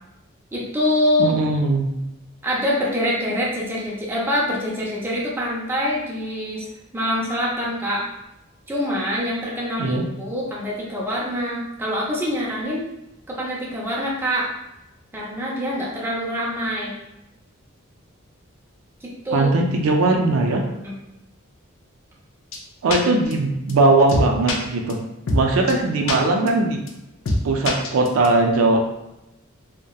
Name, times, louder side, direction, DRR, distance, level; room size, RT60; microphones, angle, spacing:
voice 1, 0.5-1.4 2.4-6.7 6.9-8.1 8.7-12.8 13.3-14.5 15.1-17.0 19.0-19.5 20.8-21.0, equal, 10° right, -6 dB, 0.4 m, -25 dB
voice 2, 1.2-1.9 9.8-10.0 19.3-20.6 22.8-25.0 25.3-26.8 27.4-28.9, right 2 dB, 80° right, 2 dB, 0.4 m, -19 dB
sound 1, 22.5-22.6 22.9-23.0 23.3-23.4 23.7-23.8 24.1-24.6 24.9-25.0 25.3-25.4 25.7-25.8 26.1-26.2 26.5-26.6 26.9-27.0 27.2-27.4 27.6-28.3, left 2 dB, 65° left, 0.4 m, -22 dB
2.7 x 2.1 x 2.2 m, 0.90 s
head